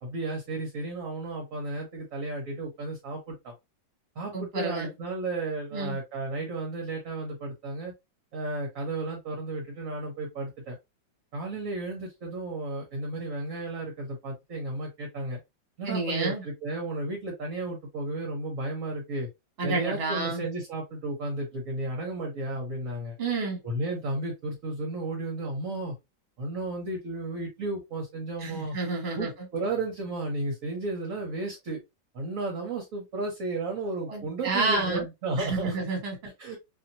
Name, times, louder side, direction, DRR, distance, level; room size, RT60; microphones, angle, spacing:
voice 1, 0.0-3.5 4.2-7.9 8.3-10.8 11.3-15.4 15.8-19.3 19.6-23.1 23.6-25.9 26.4-28.8 29.2-31.8 32.1-35.8 36.4-36.6, right 2 dB, 55° right, 1.1 m, -33 dB
voice 2, 4.3-4.9 5.7-6.0 15.8-16.4 19.6-20.4 23.2-23.6 28.4-29.3 34.1-35.1 35.4-36.3, right 3 dB, 35° right, 1.3 m, -30 dB
2.9 x 2.8 x 2.6 m
omnidirectional pair, 2.1 m